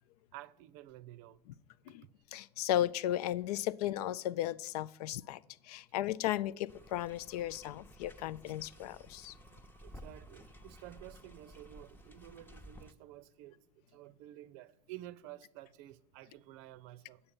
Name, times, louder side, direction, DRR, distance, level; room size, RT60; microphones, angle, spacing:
voice 1, 0.3-1.4 9.3-17.2, right 14 dB, 60° right, 0.5 m, -52 dB
voice 2, 2.3-9.3, left 13 dB, 70° left, 0.4 m, -35 dB
sound 1, 6.7-12.9, equal, 10° left, 0.8 m, -54 dB
8.7 x 6.8 x 7.0 m
hypercardioid pair, 75°, 21 cm